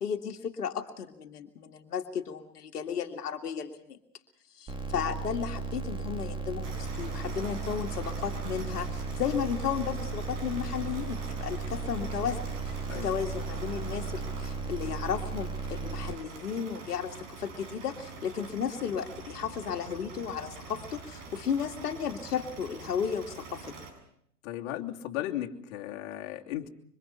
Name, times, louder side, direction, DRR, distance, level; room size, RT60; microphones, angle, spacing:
voice 1, 0.0-4.0 4.5-23.7, left 7 dB, 70° left, 4 dB, 2.4 m, -34 dB
sound 1, 4.7-16.1, right 4 dB, 10° right, 2.7 m, -36 dB
sound 2, 6.6-23.9, right 3 dB, 45° right, 7.6 m, -44 dB
voice 2, 24.4-26.7, left 13 dB, 45° left, 1 dB, 2.9 m, -36 dB
26.0 x 25.0 x 5.6 m, 0.70 s
hypercardioid pair, 115°, 47 cm